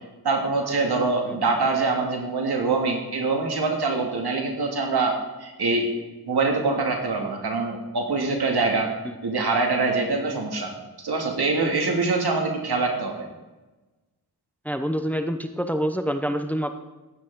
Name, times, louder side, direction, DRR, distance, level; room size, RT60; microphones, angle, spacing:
voice 1, 0.2-5.1 5.4-5.9 6.3-8.9 9.2-10.7 11.0-13.2, right 3 dB, 85° right, 1 dB, 2.3 m, -24 dB
voice 2, 14.6-16.7, equal, 5° left, 7 dB, 0.8 m, -27 dB
15.0 x 9.4 x 3.7 m, 1.1 s
wide cardioid pair, 85°, 38 cm